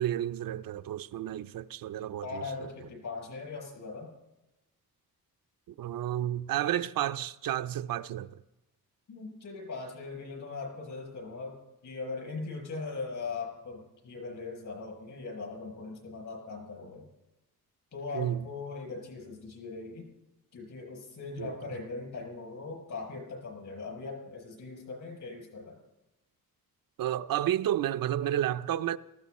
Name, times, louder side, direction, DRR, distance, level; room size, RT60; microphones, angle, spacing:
voice 1, 0.0-2.4 5.8-8.4 18.1-18.5 21.4-21.5 27.0-29.0, right 12 dB, 65° right, 0.6 m, -31 dB
voice 2, 2.2-4.1 9.1-17.1 17.9-20.1 20.5-25.8, left 4 dB, 55° left, 7.8 m, -40 dB
19.0 x 16.0 x 4.2 m
cardioid pair, 135°, 37 cm